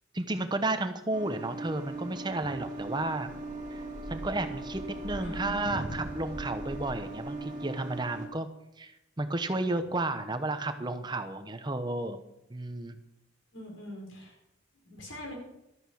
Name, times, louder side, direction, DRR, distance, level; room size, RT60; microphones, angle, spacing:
voice 1, 0.1-3.3 3.7-3.8 4.1-8.5 8.8-8.9 9.2-12.2 12.5-12.9, right 2 dB, 20° right, 9 dB, 0.9 m, -32 dB
sound 1, 1.1-8.3, right 2 dB, 35° right, 2.0 m, -39 dB
voice 2, 5.2-6.0 13.5-14.3 14.8-15.4, equal, 75° left, 0 dB, 4.8 m, -41 dB
12.5 x 8.7 x 6.3 m, 0.87 s
head